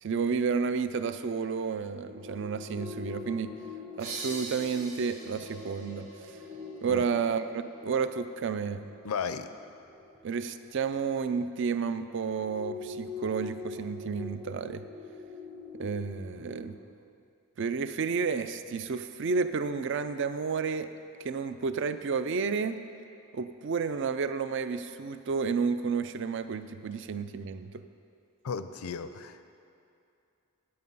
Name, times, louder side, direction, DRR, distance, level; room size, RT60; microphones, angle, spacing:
voice 1, 0.0-3.5 4.0-6.1 6.8-8.9 10.2-14.8 15.7-16.8 17.6-20.9 21.2-22.8 23.3-27.7, right 5 dB, 55° right, 11 dB, 0.4 m, -31 dB
sound 1, 2.1-11.3 12.2-16.7, left 4 dB, 25° right, 1.0 m, -44 dB
sound 2, 4.0-7.4, right 3 dB, 80° right, 1.8 m, -43 dB
voice 2, 9.0-9.5 28.4-29.5, left 6 dB, 85° left, 11 dB, 0.5 m, -35 dB
9.6 x 8.5 x 5.4 m, 2.6 s
head